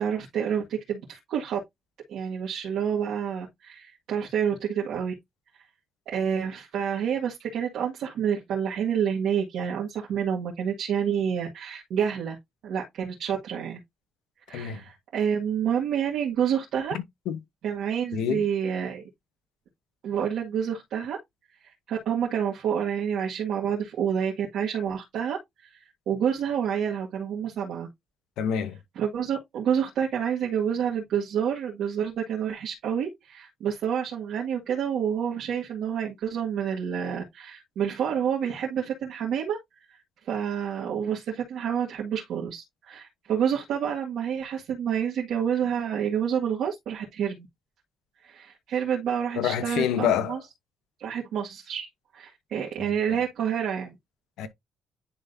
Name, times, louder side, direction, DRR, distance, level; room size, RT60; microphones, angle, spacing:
voice 1, 0.0-1.6 2.1-5.1 6.1-12.4 12.6-13.8 14.5-17.0 17.6-19.0 20.0-21.2 21.6-25.4 25.7-25.8 26.1-27.9 29.0-39.6 40.2-47.5 48.2-50.4 51.0-51.9 52.1-54.0, right 8 dB, 80° right, 2.0 m, -28 dB
voice 2, 14.5-14.8 17.3-17.4 18.1-18.5 28.4-28.8 49.3-50.4 52.8-53.2 54.4-54.5, left 9 dB, 90° left, 1.0 m, -27 dB
10.5 x 3.7 x 2.7 m
cardioid pair, 90°, 0 cm